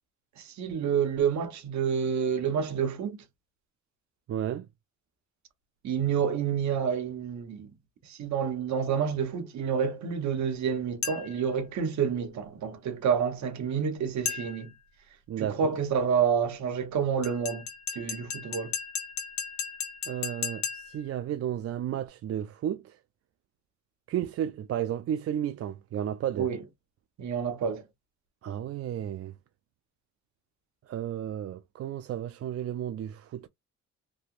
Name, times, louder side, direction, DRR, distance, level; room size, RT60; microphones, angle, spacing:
voice 1, 0.4-3.2 5.8-7.7 8.1-14.7 15.4-17.6 17.9-18.7 26.4-26.6 27.2-27.8, right 7 dB, 70° right, 1.0 m, -28 dB
voice 2, 4.3-4.7 15.3-15.8 20.1-23.0 24.1-26.5 28.4-29.3 30.9-33.5, right 10 dB, 50° right, 0.4 m, -33 dB
sound 1, 11.0-11.5 14.3-14.8 17.2-21.1, left 7 dB, 65° left, 1.3 m, -36 dB
3.2 x 2.8 x 2.5 m
cardioid pair, 90°, 30 cm